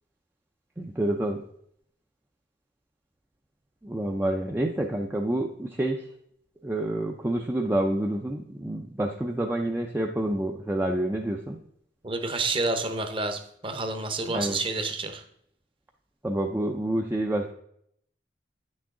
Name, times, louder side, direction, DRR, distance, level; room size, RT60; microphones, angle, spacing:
voice 1, 0.8-1.4 3.8-6.1 6.6-11.6 14.3-14.6 16.2-17.5, right 1 dB, 10° right, 2 dB, 0.4 m, -28 dB
voice 2, 12.0-15.2, right 3 dB, 30° right, 7 dB, 0.8 m, -29 dB
9.3 x 6.1 x 3.7 m, 0.71 s
head